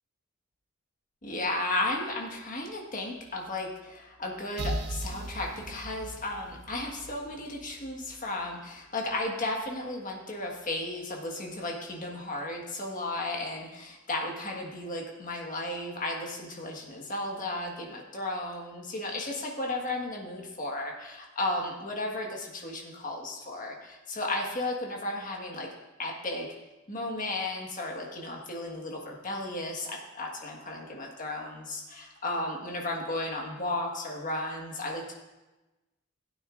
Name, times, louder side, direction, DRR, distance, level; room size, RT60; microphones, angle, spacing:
voice 1, 1.2-25.7 26.0-26.5 26.9-35.1, left 2 dB, 40° left, 0 dB, 1.6 m, -34 dB
sound 1, 4.6-8.3, right 1 dB, 50° right, 0.5 m, -38 dB
15.5 x 9.1 x 2.6 m, 1.1 s
head